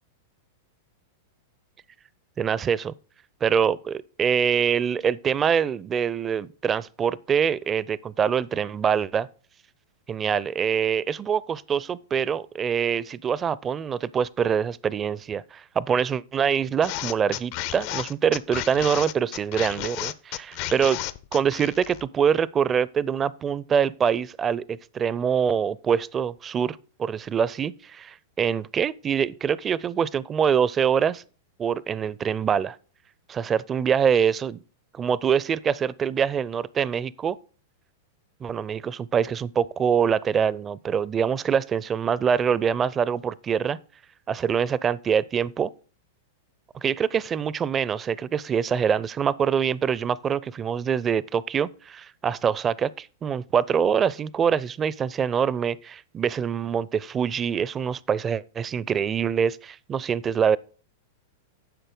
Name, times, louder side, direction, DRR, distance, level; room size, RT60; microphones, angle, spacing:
voice 1, 2.4-2.9 3.4-9.3 10.1-21.0 21.3-31.2 31.6-32.8 33.3-34.6 34.9-37.4 38.4-43.8 44.3-45.7 46.7-60.6, right 7 dB, 25° right, 0.5 m, -24 dB
sound 1, 16.8-22.1, left 14 dB, 50° left, 0.6 m, -33 dB
10.5 x 6.5 x 3.8 m
hypercardioid pair, 105°, 0 cm